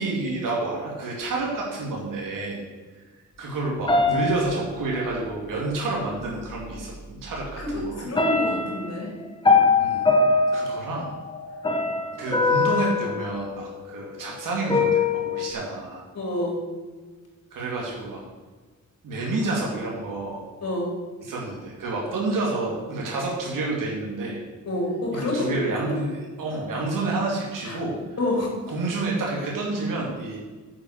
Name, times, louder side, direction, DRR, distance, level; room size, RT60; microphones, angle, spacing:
voice 1, 0.0-2.6 3.4-8.1 9.8-10.1 10.5-11.1 12.2-16.0 17.5-18.2 19.0-20.4 21.2-24.4 25.1-28.2 28.7-30.4, right 2 dB, 85° right, -3 dB, 2.4 m, -29 dB
sound 1, 3.9-5.3 6.5-6.6 7.1-7.6 8.2-14.1 14.7-15.5, left 4 dB, 15° left, 1.1 m, -23 dB
voice 2, 8.0-9.1 16.1-16.6 20.6-20.9 24.7-26.0 27.6-27.8 28.2-28.5, left 1 dB, 50° left, -1 dB, 4.1 m, -27 dB
9.4 x 7.4 x 6.5 m, 1.3 s
wide cardioid pair, 155°, 31 cm